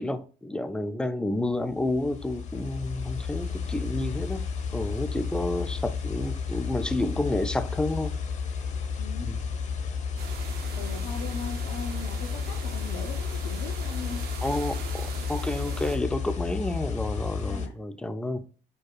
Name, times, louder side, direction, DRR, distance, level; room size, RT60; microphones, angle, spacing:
voice 1, 0.0-8.1 9.2-9.4 14.4-18.4, left 2 dB, 5° left, 0.4 m, -30 dB
sound 1, 1.6-17.7, left 5 dB, 45° left, 0.7 m, -32 dB
voice 2, 9.0-9.3 10.8-14.2 17.5-17.7, left 5 dB, 85° left, 0.7 m, -39 dB
sound 2, 10.2-16.0, right 8 dB, 70° right, 0.6 m, -42 dB
4.4 x 2.3 x 4.5 m
cardioid pair, 110°, 17 cm